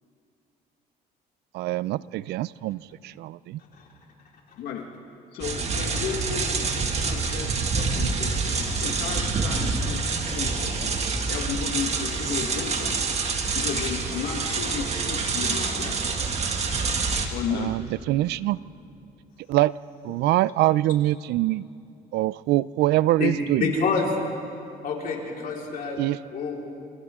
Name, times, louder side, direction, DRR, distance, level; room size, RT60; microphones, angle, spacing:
voice 1, 1.5-3.6 17.5-17.8 18.1-18.6 19.5-19.8 20.0-21.7 22.1-23.7 26.0-26.2, right 16 dB, 80° right, 20 dB, 0.4 m, -24 dB
voice 2, 4.6-4.9 5.3-10.0 10.3-10.9 11.3-13.0 13.5-16.2 17.3-17.7, left 7 dB, 75° left, 2 dB, 1.5 m, -34 dB
sound 1, 5.4-17.3, right 4 dB, 40° right, 2.1 m, -27 dB
voice 3, 23.6-24.1 24.8-26.0 26.3-26.6, left 5 dB, 60° left, -2 dB, 4.4 m, -27 dB
28.5 x 27.5 x 3.7 m, 2.6 s
cardioid pair, 110°, 17 cm